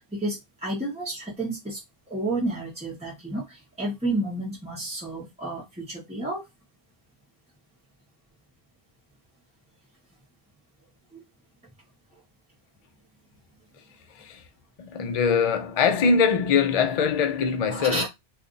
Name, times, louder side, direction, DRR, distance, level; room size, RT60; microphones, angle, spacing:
voice 1, 0.1-1.8 2.1-6.4 11.1-11.2 17.7-18.1, right 2 dB, 5° right, 0.9 m, -31 dB
voice 2, 14.8-18.1, left 6 dB, 50° left, 0.5 m, -22 dB
2.6 x 2.5 x 3.7 m
omnidirectional pair, 1.0 m